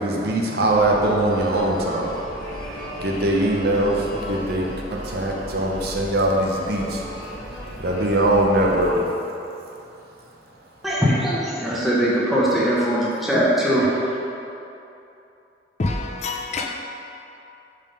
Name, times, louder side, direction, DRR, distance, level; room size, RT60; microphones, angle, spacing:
voice 1, 0.0-2.3 3.0-7.0 7.8-9.2, right 1 dB, 60° right, -1 dB, 0.7 m, -22 dB
sound 1, 0.7-8.9, equal, 60° left, 1.5 m, -35 dB
voice 2, 10.8-13.9, equal, ahead, -8 dB, 1.0 m, -20 dB
voice 3, 15.8-16.8, left 3 dB, 40° left, 2 dB, 0.4 m, -26 dB
5.3 x 3.6 x 5.2 m, 2.8 s
head